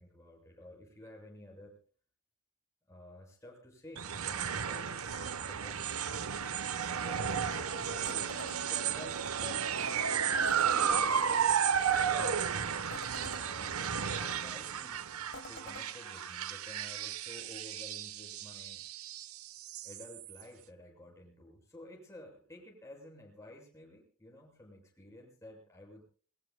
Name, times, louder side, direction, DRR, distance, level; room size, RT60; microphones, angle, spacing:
voice 1, 0.0-1.7 2.9-5.9 7.0-11.0 12.1-12.9 13.2-13.8 14.1-18.8 19.8-26.0, left 1 dB, 15° left, -2 dB, 6.9 m, -52 dB
sound 1, 4.0-20.4, right 7 dB, 70° right, 1.0 m, -33 dB
sound 2, 8.1-8.6 10.5-11.0 12.9-13.4 15.3-15.9, left 2 dB, 60° left, 2.2 m, -47 dB
28.0 x 22.0 x 2.2 m, 0.43 s
head